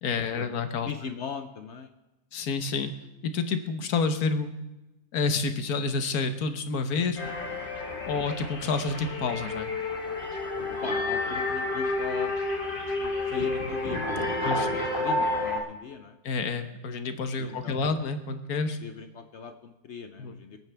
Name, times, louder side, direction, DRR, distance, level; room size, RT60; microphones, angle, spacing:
voice 1, 0.0-0.9 2.3-2.9 3.2-4.5 5.1-7.2 8.1-9.7 14.4-14.7 16.2-18.8 20.2-20.4, left 4 dB, 85° left, 8 dB, 1.5 m, -29 dB
voice 2, 0.9-1.9 8.0-8.2 10.8-12.3 13.0-16.2 17.4-17.9 18.8-20.6, left 6 dB, 60° left, 8 dB, 0.9 m, -39 dB
sound 1, 7.2-15.6, left 2 dB, 35° left, 1.8 m, -30 dB
26.5 x 9.0 x 3.4 m, 1.0 s
omnidirectional pair, 1.6 m